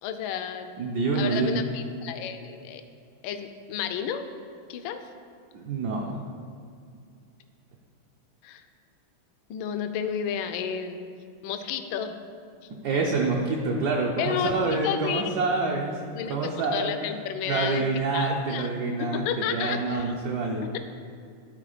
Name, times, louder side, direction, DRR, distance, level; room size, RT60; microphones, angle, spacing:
voice 1, 0.0-0.7 1.1-2.8 3.2-4.3 4.7-5.0 8.4-8.6 9.5-11.0 11.4-12.2 14.2-15.2 16.1-17.9 18.1-18.7 19.0-20.1 20.6-20.8, left 8 dB, 75° left, 7 dB, 1.2 m, -31 dB
voice 2, 0.8-1.6 5.5-6.2 12.8-16.9 17.5-20.7, right 3 dB, 70° right, -1 dB, 1.0 m, -27 dB
11.5 x 4.3 x 4.9 m, 2.3 s
omnidirectional pair, 2.4 m